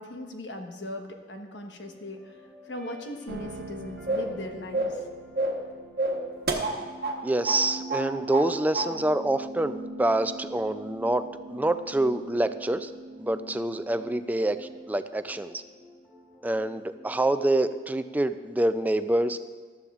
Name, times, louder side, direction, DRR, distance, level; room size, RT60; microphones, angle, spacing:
voice 1, 0.0-2.4 2.7-5.0, left 1 dB, 85° left, 4 dB, 1.2 m, -39 dB
sound 1, 1.7-18.4, left 2 dB, 5° left, 3.6 m, -49 dB
sound 2, 3.3-15.6, right 3 dB, 75° right, 0.8 m, -45 dB
sound 3, 4.1-4.4 4.7-5.0 5.4-5.7 6.0-7.2 7.5-7.6 7.9-8.5 8.7-8.9, right 2 dB, 60° right, 1.1 m, -28 dB
voice 2, 7.2-12.9 13.2-15.6 16.4-19.4, right 1 dB, 10° right, 11 dB, 0.3 m, -26 dB
14.5 x 12.5 x 2.4 m, 1.5 s
head